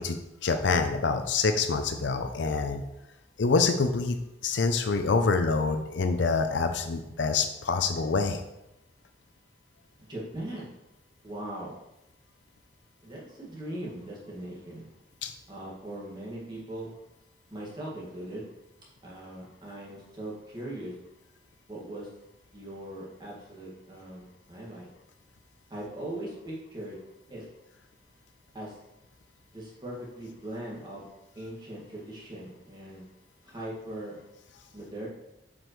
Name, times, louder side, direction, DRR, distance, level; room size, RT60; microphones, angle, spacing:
voice 1, 0.0-2.8 3.4-4.2 4.4-8.4 15.2-15.3, left 4 dB, 80° left, 7 dB, 0.5 m, -26 dB
voice 2, 10.0-10.7 11.2-11.7 13.0-14.8 15.5-16.9 17.5-18.4 19.0-20.9 21.7-22.1 22.5-24.9 25.7-27.0 27.3-27.4 28.5-28.8 29.5-31.1 31.4-33.0 33.4-34.2 34.7-35.1, right 1 dB, 25° right, -5 dB, 1.9 m, -40 dB
7.6 x 5.1 x 3.1 m, 0.88 s
head